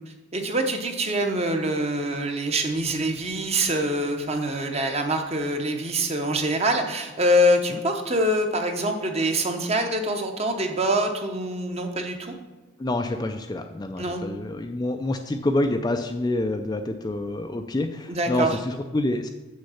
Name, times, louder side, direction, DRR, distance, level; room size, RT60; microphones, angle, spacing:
voice 1, 0.3-12.3 14.0-14.2 18.1-18.6, right 1 dB, 30° right, 5 dB, 0.8 m, -25 dB
voice 2, 12.8-19.3, left 1 dB, 20° left, 5 dB, 0.3 m, -27 dB
7.2 x 6.3 x 5.6 m, 1.2 s
head